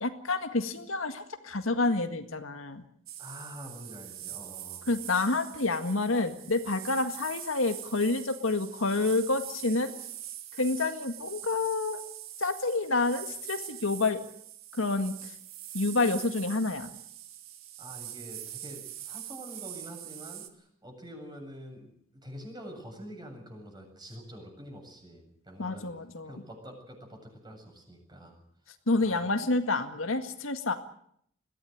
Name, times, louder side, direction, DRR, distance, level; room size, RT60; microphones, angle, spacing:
voice 1, 0.0-2.8 4.9-9.9 10.6-12.0 12.4-14.2 14.7-15.3 15.7-16.9 25.6-26.3 28.9-30.7, left 3 dB, 75° left, 7 dB, 1.9 m, -28 dB
sound 1, 3.1-20.5, right 12 dB, 85° right, 1.9 m, -43 dB
voice 2, 3.2-4.9 17.8-25.9 26.2-28.4 29.0-29.3, equal, 20° right, 2 dB, 7.6 m, -46 dB
22.0 x 16.0 x 9.3 m, 0.68 s
head